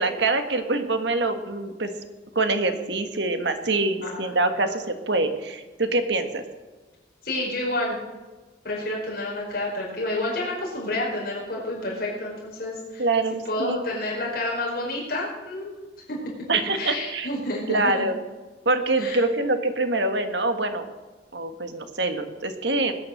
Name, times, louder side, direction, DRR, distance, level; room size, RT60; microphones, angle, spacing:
voice 1, 0.0-1.9 2.3-6.4 13.0-13.8 16.5-17.3 17.7-18.2 18.6-20.9 21.3-23.0, right 2 dB, 70° right, 7 dB, 1.6 m, -25 dB
voice 2, 7.2-8.0 8.6-13.0 13.4-15.7 16.1-16.2 16.7-18.1 19.0-19.2, left 1 dB, 50° left, -4 dB, 5.0 m, -29 dB
19.0 x 9.5 x 6.6 m, 1.3 s
head